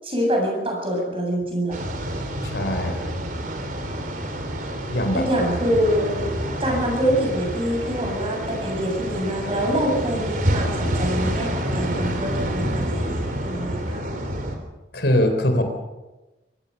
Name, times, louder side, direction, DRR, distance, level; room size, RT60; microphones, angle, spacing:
voice 1, 0.0-1.9 5.1-6.2 6.6-14.0, equal, 30° right, 1 dB, 7.9 m, -25 dB
sound 1, 1.7-14.6, equal, 50° right, 3.8 m, -28 dB
voice 2, 2.4-3.2 4.9-5.2 14.9-15.6, left 1 dB, 70° left, 7 dB, 3.8 m, -22 dB
25.0 x 17.0 x 6.8 m, 1.1 s
head